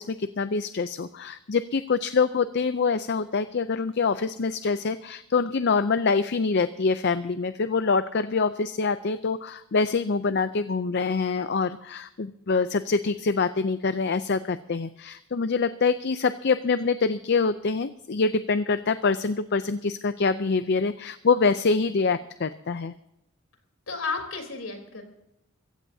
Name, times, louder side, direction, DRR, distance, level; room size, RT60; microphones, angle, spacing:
voice 1, 0.0-22.9, left 4 dB, 50° left, 12 dB, 0.5 m, -25 dB
voice 2, 23.9-25.0, left 4 dB, 65° left, 4 dB, 3.7 m, -32 dB
24.0 x 15.5 x 2.8 m, 0.83 s
head